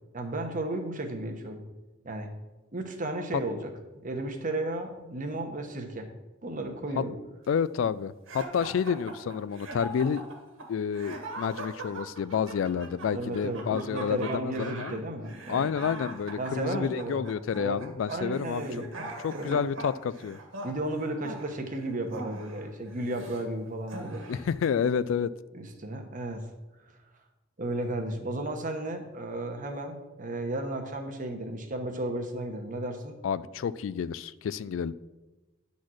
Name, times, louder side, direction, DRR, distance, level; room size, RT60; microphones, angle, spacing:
voice 1, 0.1-1.6 2.0-2.3 2.7-3.7 4.0-6.1 6.4-7.2 13.1-15.7 16.4-17.2 17.6-19.1 19.3-19.6 20.6-24.2 25.5-26.5 27.6-33.2, right 1 dB, 45° right, 4 dB, 1.1 m, -34 dB
voice 2, 7.5-10.2 10.7-15.0 15.5-18.6 19.2-20.4 24.3-25.3 33.2-34.9, left 7 dB, 75° left, 17 dB, 0.3 m, -29 dB
sound 1, 8.3-23.4 23.9-24.6, right 2 dB, 90° right, 1.6 m, -42 dB
10.0 x 4.2 x 6.3 m, 1.1 s
head